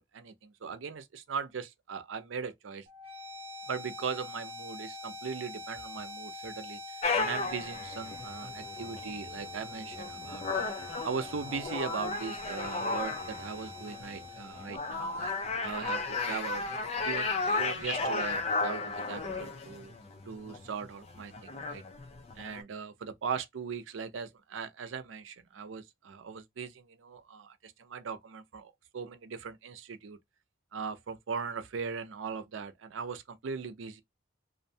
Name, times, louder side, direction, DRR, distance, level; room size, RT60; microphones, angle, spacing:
voice 1, 0.0-2.9 3.7-6.8 7.2-10.7 11.0-15.3 15.6-16.6 17.0-18.8 19.1-19.9 20.3-21.8 22.4-30.2 30.7-34.0, right 5 dB, 90° right, 0.5 m, -39 dB
sound 1, 2.9-16.8, left 2 dB, 30° right, 0.8 m, -45 dB
sound 2, 7.0-22.6, left 3 dB, 30° left, 0.4 m, -35 dB
2.5 x 2.1 x 2.6 m
head